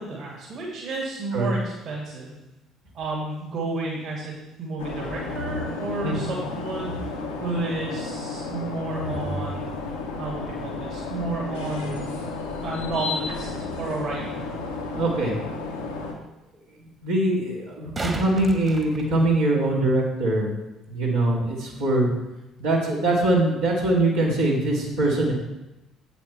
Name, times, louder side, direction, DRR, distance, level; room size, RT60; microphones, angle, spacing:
voice 1, 0.0-2.3 2.9-6.9 7.4-9.7 10.2-12.3 12.6-13.5 13.8-14.5, right 3 dB, 55° right, -4 dB, 2.6 m, -31 dB
sound 1, 4.8-16.1, left 3 dB, 85° left, 1.2 m, -32 dB
voice 2, 14.9-15.4 17.0-20.5 20.9-22.1 22.6-25.3, right 2 dB, 80° right, -7 dB, 2.4 m, -22 dB
sound 2, 17.6-19.7 22.6-22.7, right 3 dB, 30° right, 1.5 m, -35 dB
8.5 x 7.0 x 4.6 m, 0.97 s
figure-of-eight pair, 50°, 0 cm